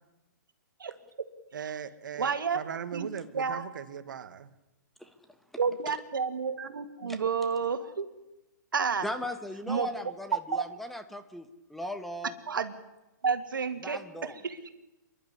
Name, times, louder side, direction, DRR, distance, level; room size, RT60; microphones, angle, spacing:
voice 1, 1.5-4.5, right 8 dB, 70° right, 13 dB, 1.6 m, -39 dB
voice 2, 2.2-2.6 2.9-3.1 3.3-3.6 5.6-8.1 8.7-9.1 9.7-9.9 10.5-10.6 12.5-12.7 13.2-14.6, right 6 dB, 85° right, 9 dB, 2.3 m, -30 dB
voice 3, 9.0-12.3 13.8-14.4, left 1 dB, ahead, 8 dB, 1.2 m, -38 dB
28.0 x 11.5 x 9.9 m, 0.99 s
hypercardioid pair, 140°, 11 cm